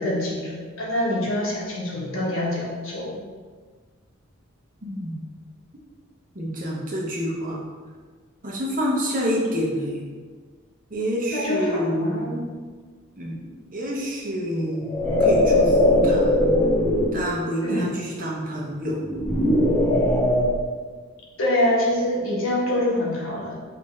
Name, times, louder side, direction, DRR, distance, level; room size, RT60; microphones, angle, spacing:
voice 1, 0.0-3.2 11.3-12.4 17.6-17.9 21.4-23.6, left 1 dB, 75° left, -4 dB, 1.2 m, -25 dB
voice 2, 4.8-5.2 6.3-7.6 8.4-10.1 10.9-12.3 13.2-16.3 17.1-19.1, equal, 40° right, -3 dB, 0.9 m, -27 dB
sound 1, 14.8-17.2 19.0-20.6, left 1 dB, 10° left, 0.4 m, -19 dB
5.5 x 2.8 x 3.3 m, 1.5 s
head